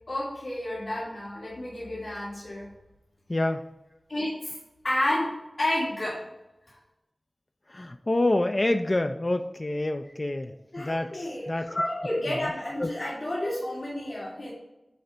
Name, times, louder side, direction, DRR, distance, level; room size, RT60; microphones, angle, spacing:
voice 1, 0.1-2.7 4.1-4.5 4.8-6.2 6.7-6.8 10.7-14.5, left 1 dB, 90° left, -9 dB, 1.9 m, -31 dB
voice 2, 3.3-3.7 7.7-11.8 12.3-12.5 12.8-12.9, left 1 dB, 40° left, 6 dB, 0.4 m, -27 dB
8.4 x 3.9 x 3.4 m, 0.96 s
wide cardioid pair, 50°, 0 cm